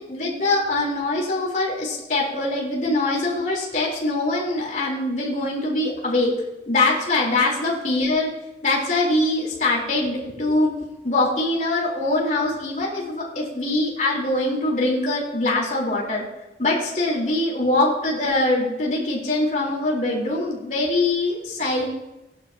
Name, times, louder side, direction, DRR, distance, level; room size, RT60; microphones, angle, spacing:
voice 1, 0.0-6.3 6.7-8.3 8.6-10.7 11.0-16.2 16.6-21.8, left 2 dB, 45° left, -4 dB, 4.0 m, -23 dB
18.5 x 11.0 x 3.0 m, 0.97 s
head